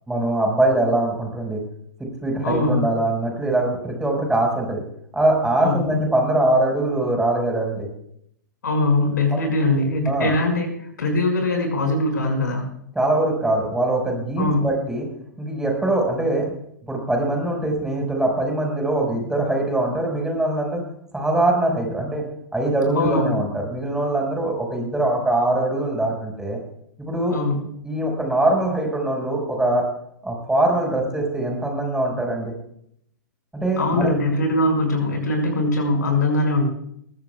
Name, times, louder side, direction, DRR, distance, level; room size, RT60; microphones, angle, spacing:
voice 1, 0.1-1.6 2.0-4.8 5.1-7.9 10.1-10.3 13.0-15.1 15.4-16.5 16.9-20.8 21.1-22.2 22.5-26.6 27.0-27.3 27.8-29.9 30.2-32.5 33.5-34.1, right 2 dB, 5° right, 1 dB, 5.1 m, -22 dB
voice 2, 2.4-2.8 5.6-6.0 8.6-12.7 14.4-14.7 22.9-23.4 27.3-27.6 33.8-36.7, left 2 dB, 70° left, 2 dB, 5.5 m, -21 dB
22.0 x 16.0 x 2.3 m, 0.70 s
figure-of-eight pair, 110°, 10 cm